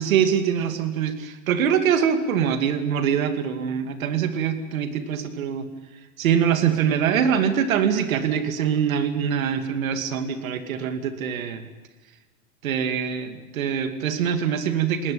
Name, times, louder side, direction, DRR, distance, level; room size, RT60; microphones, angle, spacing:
voice 1, 0.0-5.7 6.2-11.6 12.6-15.1, right 8 dB, 75° right, 8 dB, 2.7 m, -23 dB
20.0 x 18.5 x 8.7 m, 1.2 s
hypercardioid pair, 115°, 42 cm